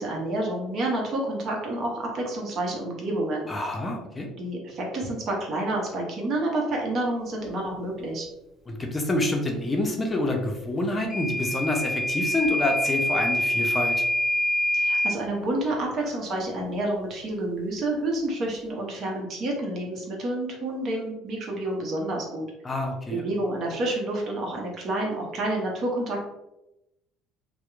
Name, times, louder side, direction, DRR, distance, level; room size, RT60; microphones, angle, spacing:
voice 1, 0.0-3.5 4.4-8.3 14.7-22.5 23.1-26.2, right 1 dB, 55° right, -1 dB, 0.8 m, -29 dB
voice 2, 3.5-4.3 8.7-14.0 22.6-23.2, left 2 dB, 25° left, 2 dB, 0.5 m, -27 dB
Microwave oven / Alarm, 11.1-15.2, equal, 15° right, 1.5 m, -25 dB
2.8 x 2.0 x 2.3 m, 0.92 s
hypercardioid pair, 65°, 0 cm